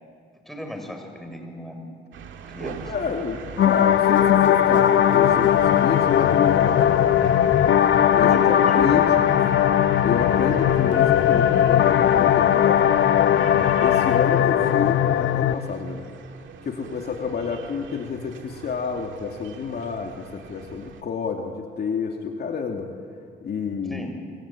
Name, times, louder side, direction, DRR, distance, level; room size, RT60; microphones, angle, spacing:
voice 1, 0.4-1.9 2.5-3.1 3.4-3.5 8.2-8.7 23.9-24.1, left 1 dB, ahead, 3 dB, 6.6 m, -36 dB
sound 1, 2.1-21.0, right 8 dB, 75° right, 2.0 m, -40 dB
voice 2, 2.8-7.1 8.1-9.3 10.0-12.9 13.8-16.1 16.6-22.9 23.4-24.0, left 5 dB, 55° left, 2 dB, 2.7 m, -29 dB
sound 2, 3.6-15.5, left 10 dB, 70° left, 1.0 m, -18 dB
26.5 x 25.5 x 8.7 m, 2.2 s
cardioid pair, 90°, 20 cm